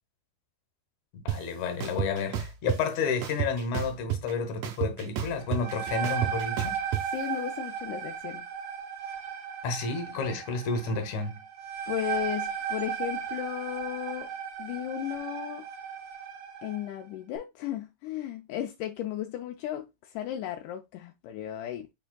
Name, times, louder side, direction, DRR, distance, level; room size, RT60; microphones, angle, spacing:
voice 1, 1.3-6.8 9.6-11.4, left 4 dB, 65° left, 2.0 m, -31 dB
sound 1, 1.3-1.4 1.8-2.8 3.2-4.3 4.6-7.0, right 11 dB, 85° right, 1.6 m, -30 dB
sound 2, 5.4-16.9, right 8 dB, 65° right, 2.3 m, -36 dB
voice 2, 7.1-8.4 11.9-14.3 14.6-15.7 16.6-21.9, left 12 dB, 85° left, 1.8 m, -35 dB
6.9 x 3.4 x 2.2 m
omnidirectional pair, 4.1 m